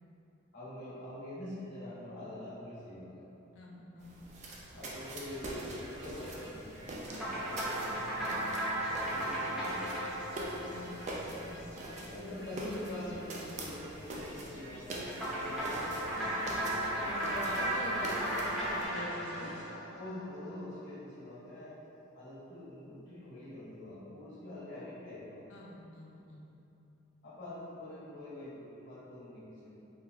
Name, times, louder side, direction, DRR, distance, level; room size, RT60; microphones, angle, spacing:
voice 1, 0.5-3.2 4.7-8.5 8.9-10.1 12.1-16.2 16.5-17.1 17.5-17.7 19.9-21.8 22.1-25.5 27.2-29.8, left 1 dB, 55° left, -11 dB, 1.0 m, -45 dB
voice 2, 3.5-4.2 10.5-11.7 17.0-19.6 25.5-26.4, left 1 dB, 75° left, -2 dB, 0.5 m, -44 dB
sound 1, 4.0-18.9, right 1 dB, 35° right, 0.3 m, -44 dB
sound 2, 4.6-19.6, equal, 85° right, 0.8 m, -50 dB
sound 3, 7.1-11.7 15.1-20.5, right 1 dB, ahead, 0.7 m, -35 dB
3.4 x 2.9 x 2.4 m, 2.9 s
head